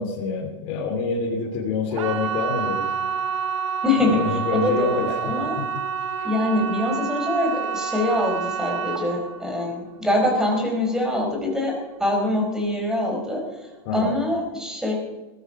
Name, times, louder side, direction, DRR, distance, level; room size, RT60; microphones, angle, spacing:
voice 1, 0.0-2.9 4.0-5.3 6.2-6.3 13.8-14.1, left 4 dB, 45° left, -3 dB, 3.2 m, -27 dB
sound 1, 1.9-12.8 13.0-13.6 14.0-14.1, right 6 dB, 80° right, 1.6 m, -29 dB
voice 2, 3.8-4.2 4.5-5.6 6.2-14.9, left 1 dB, 5° right, 1 dB, 4.3 m, -24 dB
20.5 x 12.0 x 4.9 m, 1.1 s
supercardioid pair, 150°, 16 cm